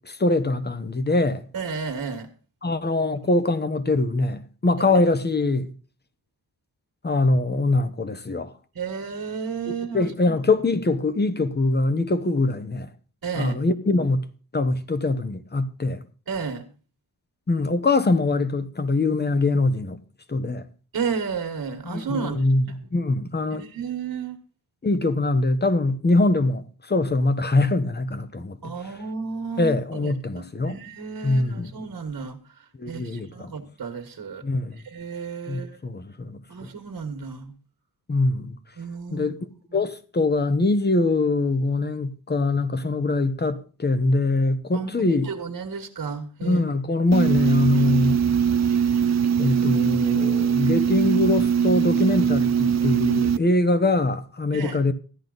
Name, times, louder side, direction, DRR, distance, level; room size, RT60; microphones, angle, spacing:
voice 1, 0.1-1.5 2.6-5.7 7.0-8.5 9.7-12.9 13.4-14.2 14.5-16.0 17.5-20.0 20.3-20.6 21.8-23.6 24.8-28.6 29.6-30.8 31.2-31.7 32.8-33.5 34.4-34.8 35.5-36.7 38.1-38.6 39.1-39.4 39.7-45.3 46.4-48.2 49.4-54.9, left 2 dB, 25° left, 1.0 m, -23 dB
voice 2, 1.5-2.3 8.7-10.4 13.2-13.6 16.3-16.6 20.9-22.4 22.7-22.8 23.5-24.4 28.6-32.4 32.9-34.4 34.8-35.8 36.5-37.5 38.8-39.3 39.7-39.9 44.7-46.6 54.5-54.8, right 5 dB, 65° right, 1.7 m, -32 dB
sound 1, 47.1-53.4, right 7 dB, 45° right, 0.5 m, -21 dB
14.0 x 11.0 x 4.0 m
wide cardioid pair, 145°, 38 cm